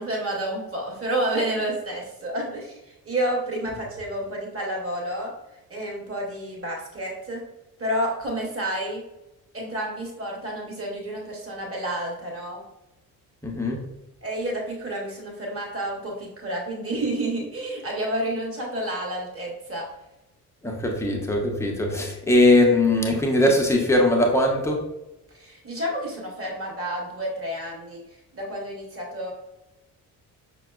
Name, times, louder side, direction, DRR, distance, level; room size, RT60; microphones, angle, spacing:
voice 1, 0.0-2.8 3.0-5.3 5.7-7.4 7.8-9.0 9.5-12.6 14.2-19.9 25.3-28.0 28.3-29.3, right 1 dB, 30° right, -1 dB, 1.3 m, -30 dB
voice 2, 13.4-13.8 20.6-24.8, left 1 dB, 5° left, 1 dB, 0.8 m, -20 dB
5.7 x 2.3 x 2.3 m, 0.96 s
figure-of-eight pair, 40°, 48 cm